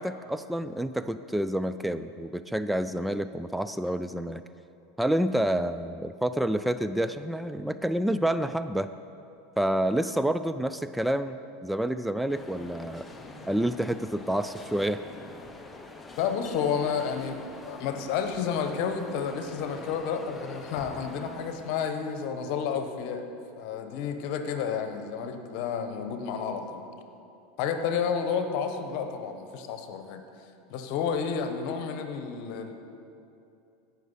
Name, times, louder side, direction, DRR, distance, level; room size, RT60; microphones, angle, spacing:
voice 1, 0.0-4.4 5.0-8.9 9.6-13.1 13.5-15.0, right 1 dB, 5° right, 11 dB, 0.3 m, -28 dB
sound 1, 12.3-22.3, left 2 dB, 15° left, 0.9 m, -45 dB
voice 2, 16.2-23.2 23.6-26.8 27.6-30.2 30.7-32.7, left 6 dB, 60° left, 7 dB, 1.1 m, -31 dB
15.5 x 6.0 x 5.5 m, 2.7 s
hypercardioid pair, 105°, 0 cm